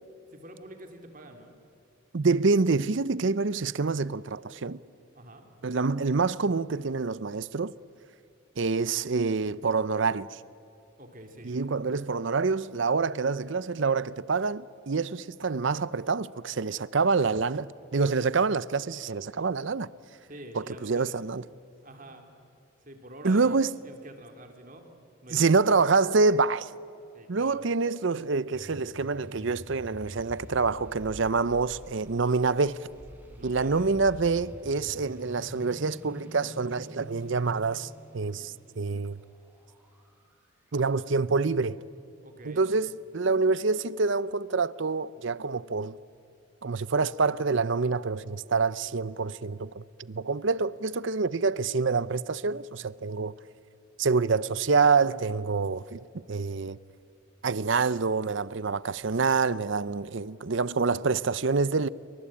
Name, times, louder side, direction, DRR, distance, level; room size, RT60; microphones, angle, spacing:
voice 1, 0.3-1.5 5.1-5.4 11.0-11.6 20.2-21.3 21.8-22.3 22.8-25.0 25.2-25.6 27.1-27.7 33.2-33.9 42.2-42.6, right 1 dB, 40° right, 3.0 m, -47 dB
voice 2, 2.1-4.8 5.6-7.7 8.6-10.4 11.4-19.9 20.5-21.4 23.2-23.7 25.3-26.7 27.3-32.9 33.4-39.2 40.7-41.8 42.4-46.0 46.6-53.3 54.0-56.0 56.3-56.8 57.4-61.9, right 4 dB, 60° right, 0.6 m, -26 dB
sound 1, 28.5-41.0, equal, 10° right, 4.4 m, -47 dB
28.5 x 24.5 x 8.6 m
head